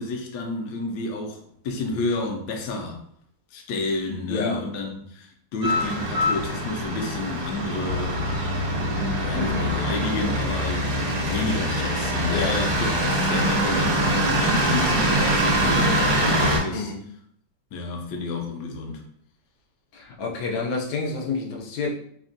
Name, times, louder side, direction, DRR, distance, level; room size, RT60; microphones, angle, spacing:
voice 1, 0.0-1.4 1.6-3.0 3.5-8.2 9.1-16.9 17.7-19.0, left 2 dB, 70° left, 1 dB, 1.0 m, -30 dB
voice 2, 4.1-4.6 9.3-9.7 12.2-12.6 16.7-17.0 19.9-21.9, left 4 dB, 90° left, 0 dB, 1.4 m, -29 dB
sound 1, 5.6-16.6, equal, 65° right, 1.3 m, -24 dB
3.3 x 2.2 x 2.5 m, 0.68 s
omnidirectional pair, 2.0 m